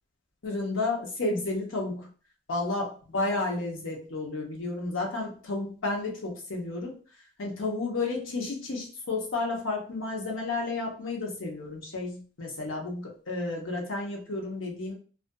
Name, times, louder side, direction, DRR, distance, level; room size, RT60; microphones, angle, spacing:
voice 1, 0.4-2.1 2.5-2.9 3.1-7.0 7.4-14.9, left 2 dB, 85° left, 0 dB, 0.8 m, -31 dB
2.5 x 2.4 x 2.2 m, 0.39 s
head